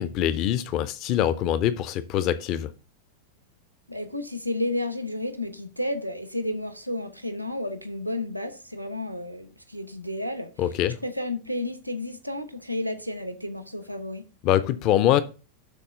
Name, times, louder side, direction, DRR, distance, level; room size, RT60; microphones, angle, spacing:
voice 1, 0.0-2.7 10.6-11.0 14.4-15.2, left 11 dB, 40° left, 0.5 m, -24 dB
voice 2, 3.9-10.5 11.0-14.3, left 1 dB, 90° right, 0.9 m, -31 dB
12.0 x 4.1 x 3.7 m
figure-of-eight pair, 90°, 0 cm